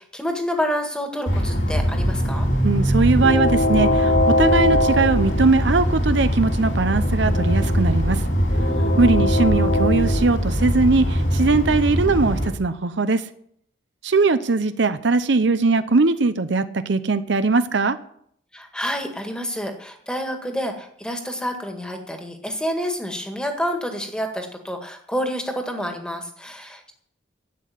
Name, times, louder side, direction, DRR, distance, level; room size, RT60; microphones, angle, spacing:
voice 1, 0.0-2.5 8.5-9.0 18.5-26.9, equal, 5° left, 1.8 m, -28 dB
Train, 1.3-12.5, equal, 65° left, 3.2 m, -20 dB
voice 2, 2.6-8.2 9.0-13.3 14.0-18.0, right 3 dB, 65° right, 0.7 m, -20 dB
11.0 x 8.5 x 9.3 m
head